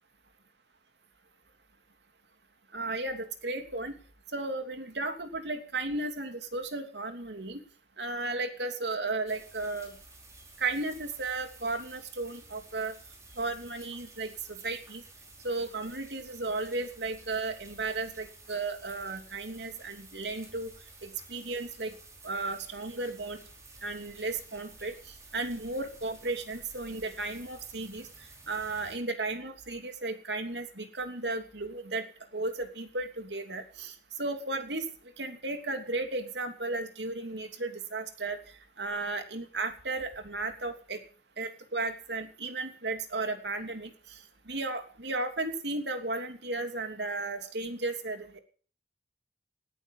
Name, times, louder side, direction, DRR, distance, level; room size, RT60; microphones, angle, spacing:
voice 1, 2.7-3.9 4.3-7.6 8.0-9.9 10.6-12.9 13.4-15.0 15.4-20.7 21.0-21.9 22.2-23.4 23.8-24.9 25.3-28.1 28.5-32.1 32.3-34.9 35.2-38.4 38.8-41.0 41.4-44.2 44.5-48.4, right 3 dB, 75° right, 6 dB, 3.0 m, -34 dB
sound 1, 9.3-29.0, right 2 dB, 15° right, 4.8 m, -53 dB
18.5 x 13.5 x 5.6 m, 0.43 s
head